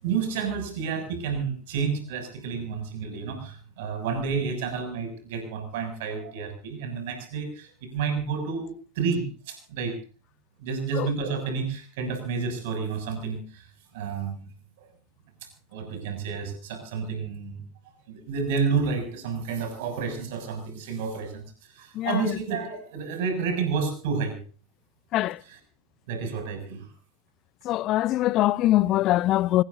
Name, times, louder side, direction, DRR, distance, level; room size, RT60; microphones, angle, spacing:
voice 1, 0.0-10.0 10.6-13.7 13.9-14.4 14.8-14.9 15.7-17.6 18.1-24.4 25.4-25.6 26.1-26.9, right 5 dB, 50° right, 7.0 m, -30 dB
voice 2, 27.7-29.6, left 15 dB, 35° left, 0.7 m, -22 dB
26.5 x 19.5 x 2.7 m
figure-of-eight pair, 90°, 0 cm